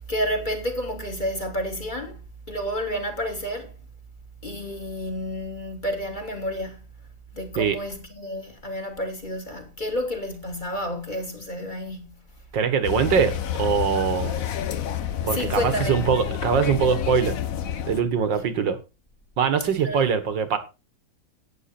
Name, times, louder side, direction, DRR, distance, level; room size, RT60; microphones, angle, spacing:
voice 1, 0.1-2.2 2.5-3.7 4.4-6.8 7.3-12.1 15.3-16.1 19.8-20.0, equal, 25° left, 2.6 m, -30 dB
voice 2, 12.5-14.4 15.2-17.4 17.9-18.8 19.4-20.6, right 6 dB, 65° right, 2.0 m, -22 dB
sound 1, 12.8-18.0, left 10 dB, 55° left, 1.1 m, -29 dB
11.5 x 9.3 x 4.3 m
omnidirectional pair, 2.1 m